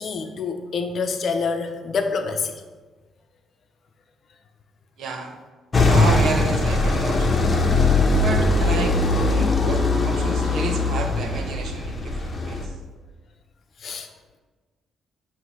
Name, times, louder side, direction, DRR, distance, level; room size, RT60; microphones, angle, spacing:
voice 1, 0.0-2.6 13.8-14.1, left 5 dB, 55° left, 6 dB, 0.7 m, -27 dB
voice 2, 5.0-5.4 5.8-7.3 8.2-12.6, right 4 dB, 70° right, 4 dB, 0.8 m, -31 dB
sound 1, 5.7-12.7, left 2 dB, 30° left, 0.9 m, -20 dB
8.1 x 2.9 x 5.6 m, 1.3 s
cardioid pair, 90°, 0 cm